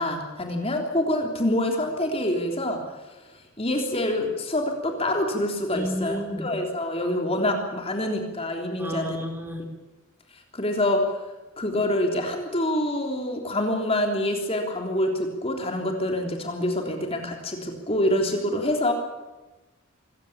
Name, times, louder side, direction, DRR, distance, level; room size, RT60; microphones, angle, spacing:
voice 1, 0.0-2.8 3.6-9.2 10.5-11.1 11.6-18.9, left 1 dB, 25° left, 3 dB, 3.4 m, -26 dB
voice 2, 5.7-6.5 8.8-9.6, left 1 dB, 10° right, 4 dB, 3.9 m, -31 dB
25.0 x 16.0 x 8.7 m, 1.1 s
head